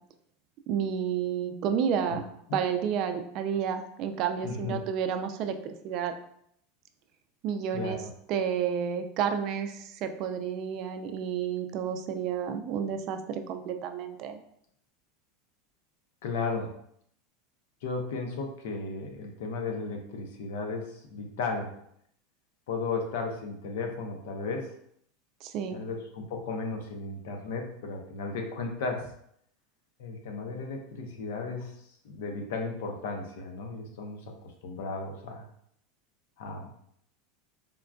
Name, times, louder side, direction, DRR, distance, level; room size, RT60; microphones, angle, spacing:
voice 1, 0.7-2.3 2.5-6.1 7.4-8.0 8.3-14.4 25.4-25.8, right 8 dB, 50° right, 7 dB, 0.3 m, -30 dB
voice 2, 4.4-4.8 7.7-8.1 16.2-16.7 17.8-21.7 22.7-24.7 25.7-29.1 30.0-31.7 32.0-34.3 34.6-35.4 36.4-36.7, left 4 dB, 75° left, 3 dB, 0.6 m, -35 dB
3.6 x 2.4 x 2.2 m, 0.70 s
supercardioid pair, 125°, 0 cm